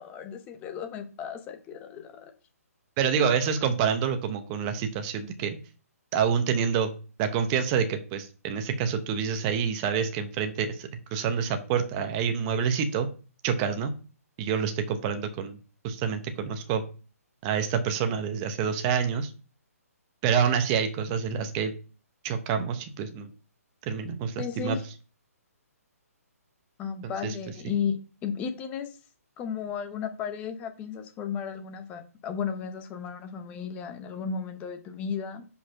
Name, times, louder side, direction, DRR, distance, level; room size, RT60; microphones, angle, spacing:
voice 1, 0.0-2.3 24.4-24.9 26.8-29.0 29.4-35.4, left 7 dB, 15° left, 8 dB, 0.8 m, -34 dB
voice 2, 3.0-5.6 6.1-6.9 7.2-13.1 13.4-13.9 14.4-15.6 15.8-16.8 17.4-19.3 20.2-21.7 22.2-23.3 23.9-24.8 27.2-27.3, right 7 dB, 25° right, 7 dB, 0.8 m, -27 dB
5.1 x 4.0 x 5.7 m, 0.36 s
hypercardioid pair, 155°, 8 cm